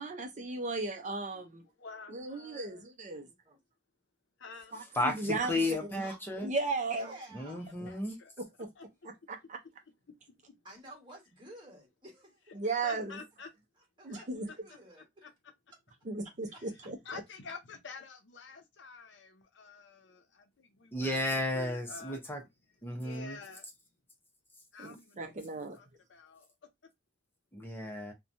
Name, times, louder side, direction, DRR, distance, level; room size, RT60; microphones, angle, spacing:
voice 1, 0.0-1.7 2.1-3.3 4.7-5.5 5.9-6.0 6.4-7.2 7.8-7.9 8.4-8.7 9.0-9.6 12.5-13.2 14.0-14.5 16.0-17.2 24.8-25.8, right 3 dB, 40° right, 0.5 m, -36 dB
voice 2, 1.8-2.8 4.4-4.8 7.9-8.3 8.8-8.9 10.1-10.2 12.8-13.5 14.1-15.3 16.8-22.2 22.9-23.7 24.7-26.5, left 5 dB, 85° left, 0.6 m, -49 dB
voice 3, 3.1-3.6 6.0-6.2 6.8-7.6 10.6-12.4 14.0-15.3 16.5-16.6, right 1 dB, 25° right, 1.3 m, -52 dB
voice 4, 4.9-6.5 7.3-8.2 20.9-22.4 22.8-23.4 27.5-28.1, left 1 dB, 10° left, 0.7 m, -33 dB
2.9 x 2.2 x 2.5 m
head